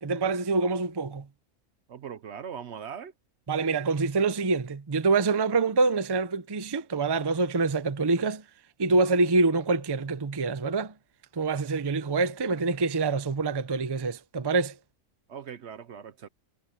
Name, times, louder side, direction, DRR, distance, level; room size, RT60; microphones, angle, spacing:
voice 1, 0.0-1.3 3.5-8.4 8.8-10.9 11.3-14.8, right 3 dB, 25° right, 0.6 m, -26 dB
voice 2, 1.9-3.1 15.3-16.3, right 7 dB, 60° right, 1.0 m, -40 dB
omnidirectional pair, 1.4 m